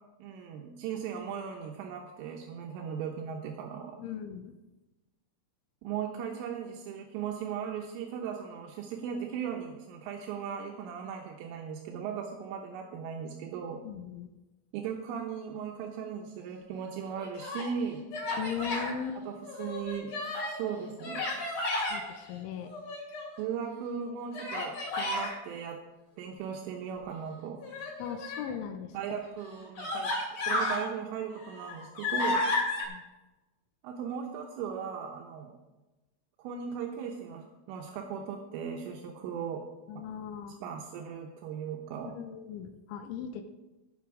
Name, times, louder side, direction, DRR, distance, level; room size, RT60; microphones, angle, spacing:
voice 1, 0.2-4.0 5.8-13.8 14.7-18.1 19.2-20.2 20.5-21.3 23.4-25.8 26.2-27.6 28.9-32.4 33.8-35.5 36.4-39.6 40.6-42.1, right 7 dB, 80° right, 1 dB, 3.4 m, -37 dB
voice 2, 4.0-4.5 13.8-14.3 18.4-19.2 21.9-22.7 28.0-29.2 32.9-33.0 39.9-40.6 42.1-43.4, left 8 dB, 80° left, 6 dB, 3.0 m, -38 dB
Human voice, 17.1-17.7 18.1-18.9 19.4-20.6 21.0-22.0 22.6-23.4 24.3-25.3 27.6-28.5 29.2-29.3 29.8-30.8 31.3-32.8, left 2 dB, 40° left, 3.4 m, -32 dB
18.0 x 6.2 x 4.8 m, 1.1 s
omnidirectional pair, 5.8 m